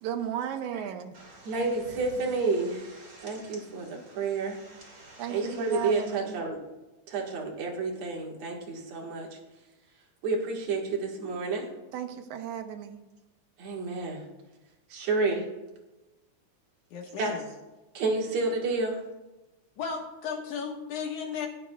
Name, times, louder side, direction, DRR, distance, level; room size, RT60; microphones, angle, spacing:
voice 1, 0.0-1.2 5.2-6.4 11.9-13.0, right 9 dB, 85° right, 7 dB, 2.2 m, -35 dB
sound 1, 1.1-6.2, right 2 dB, 30° right, 2.2 m, -51 dB
voice 2, 1.4-2.9 3.2-4.6 5.3-6.6 7.1-9.3 10.2-11.7 13.6-14.2 14.9-15.5 17.2-17.3 17.9-19.0, right 3 dB, 65° right, -1 dB, 2.9 m, -30 dB
voice 3, 16.9-17.4 19.8-21.5, left 6 dB, 80° left, 2 dB, 2.8 m, -35 dB
16.5 x 9.6 x 2.3 m, 1.1 s
omnidirectional pair, 3.4 m